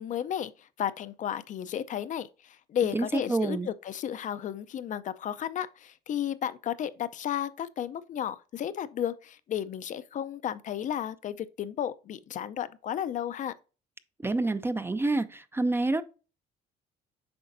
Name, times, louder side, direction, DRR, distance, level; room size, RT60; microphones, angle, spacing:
voice 1, 0.0-13.5, left 10 dB, 50° left, 0.5 m, -33 dB
voice 2, 2.9-3.7 14.2-16.0, right 2 dB, 15° right, 0.4 m, -28 dB
7.8 x 5.0 x 2.5 m
cardioid pair, 110°, 17 cm